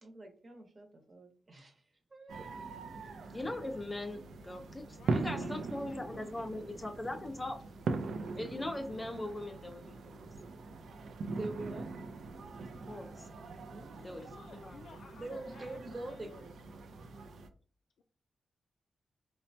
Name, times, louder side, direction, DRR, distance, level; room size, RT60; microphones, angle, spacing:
voice 1, 0.0-1.8 2.1-2.5 11.4-11.9 13.7-14.2 15.1-16.5, right 2 dB, 35° right, 0.9 m, -45 dB
sound 1, 2.3-17.5, right 3 dB, 85° right, 0.4 m, -41 dB
voice 2, 3.3-7.6 8.3-10.2 12.9-13.3 14.0-14.3 14.6-14.8, left 1 dB, 20° left, 0.5 m, -40 dB
voice 3, 4.9-6.5 14.1-16.4 18.0-18.1, left 5 dB, 80° left, 0.3 m, -55 dB
4.2 x 2.2 x 2.6 m
wide cardioid pair, 125°, 0 cm